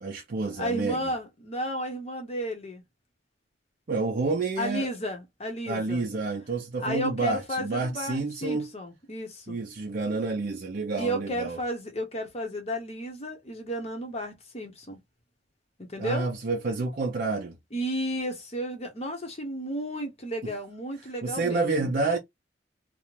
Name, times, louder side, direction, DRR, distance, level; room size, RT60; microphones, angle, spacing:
voice 1, 0.0-1.1 3.9-4.9 5.7-8.7 9.5-11.6 16.0-17.6 20.4-20.5 21.2-22.2, right 3 dB, 50° right, 0.5 m, -29 dB
voice 2, 0.6-2.8 4.6-6.0 6.8-9.6 11.0-15.0 15.9-16.3 17.7-21.9, equal, 35° left, 0.7 m, -33 dB
2.5 x 2.1 x 2.9 m
head